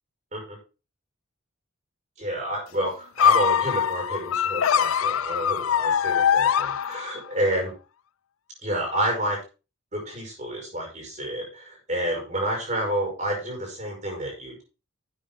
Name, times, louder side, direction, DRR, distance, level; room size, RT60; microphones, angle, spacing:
voice 1, 2.2-7.7 8.6-9.4 9.9-14.6, right 1 dB, 35° right, 0 dB, 5.4 m, -29 dB
sound 1, 3.2-7.3, left 8 dB, 80° left, 0.4 m, -22 dB
11.5 x 8.3 x 3.8 m, 0.31 s
head